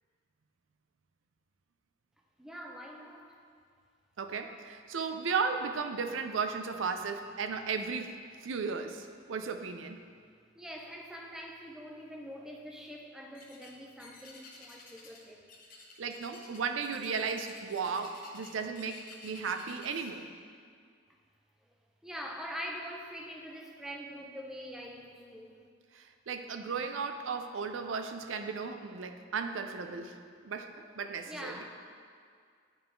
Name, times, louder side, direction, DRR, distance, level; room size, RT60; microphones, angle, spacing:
voice 1, 2.4-3.3 10.5-15.4 22.0-25.6 31.3-31.7, equal, 5° right, 1 dB, 0.6 m, -44 dB
voice 2, 4.2-8.2 8.4-10.0 16.0-20.3 25.9-31.6, right 5 dB, 80° right, 7 dB, 0.5 m, -35 dB
sound 1, 13.3-13.7 14.0-15.2 15.5-20.1, left 3 dB, 45° left, 0.9 m, -52 dB
9.0 x 3.7 x 4.5 m, 2.1 s
head